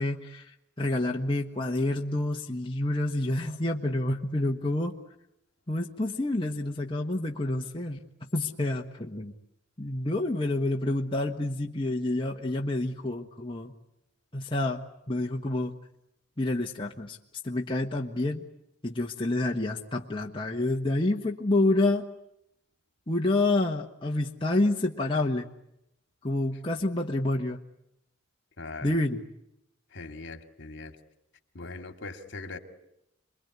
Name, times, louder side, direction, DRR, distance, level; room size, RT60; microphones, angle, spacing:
voice 1, 0.0-5.0 5.7-8.0 8.3-9.3 9.8-13.7 14.3-15.8 16.4-17.2 17.4-18.4 18.8-22.1 23.1-25.5 26.2-27.6 28.8-29.2, left 2 dB, 25° left, 1.3 m, -28 dB
voice 2, 28.6-29.0 29.9-31.0 31.5-32.6, left 3 dB, 55° left, 2.4 m, -40 dB
28.0 x 22.0 x 9.6 m
head